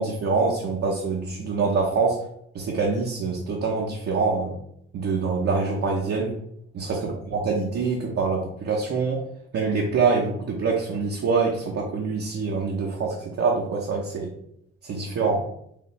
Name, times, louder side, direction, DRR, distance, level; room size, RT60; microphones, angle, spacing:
voice 1, 0.0-2.2 2.5-4.6 4.9-6.4 6.7-9.2 9.5-14.3 14.8-15.4, right 4 dB, 50° right, -2 dB, 0.9 m, -25 dB
4.9 x 2.6 x 3.3 m, 0.71 s
cardioid pair, 90°, 30 cm